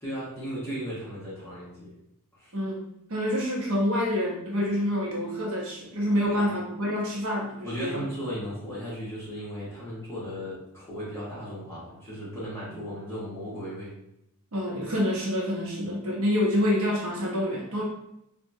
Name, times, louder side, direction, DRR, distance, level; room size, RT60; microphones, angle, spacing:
voice 1, 0.0-1.9 2.3-2.5 6.2-6.6 7.6-13.9, equal, 10° left, -10 dB, 1.0 m, -36 dB
voice 2, 2.5-2.8 3.1-8.0 14.5-17.8, equal, 75° right, -4 dB, 0.7 m, -27 dB
3.7 x 2.2 x 2.6 m, 0.81 s
head